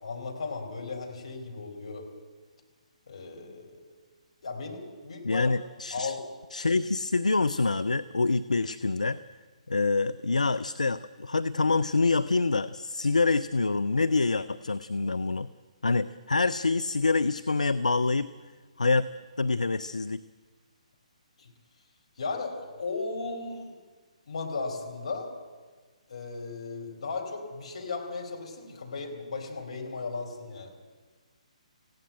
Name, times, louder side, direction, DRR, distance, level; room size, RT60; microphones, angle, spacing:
voice 1, 0.0-2.1 3.1-3.8 4.4-5.5 5.9-6.2 21.4-21.5 22.2-23.7 24.3-25.3 26.1-30.7, left 4 dB, 55° left, 1 dB, 4.3 m, -36 dB
voice 2, 5.2-6.1 6.5-9.2 9.7-15.5 15.8-18.3 18.8-19.1 19.4-20.2, left 3 dB, 70° left, 11 dB, 0.5 m, -26 dB
18.5 x 16.0 x 8.8 m, 1.4 s
figure-of-eight pair, 135°, 4 cm